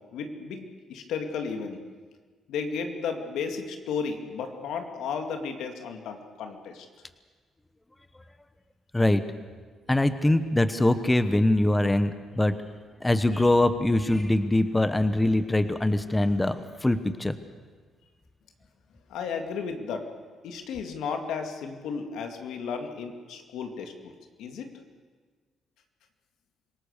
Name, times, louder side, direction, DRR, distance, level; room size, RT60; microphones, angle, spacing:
voice 1, 0.1-1.8 2.5-6.9 19.1-20.1 20.4-24.1 24.4-24.7, left 5 dB, 85° left, 5 dB, 2.4 m, -34 dB
voice 2, 9.9-12.5 13.0-17.4, left 1 dB, 15° left, 11 dB, 1.1 m, -23 dB
26.5 x 18.0 x 6.8 m, 1.5 s
cardioid pair, 90°, 0 cm